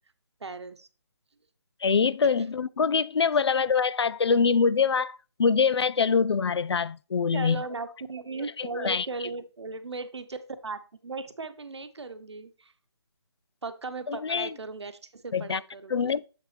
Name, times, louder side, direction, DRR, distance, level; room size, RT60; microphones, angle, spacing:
voice 1, 0.4-0.9 2.3-2.4 7.3-12.7 13.6-16.1, right 3 dB, 75° right, 1.0 m, -37 dB
voice 2, 1.8-7.6 8.6-9.1 14.1-14.5 15.3-15.6 15.9-16.2, left 5 dB, 70° left, 0.4 m, -24 dB
7.6 x 6.1 x 3.3 m
figure-of-eight pair, 165°, 14 cm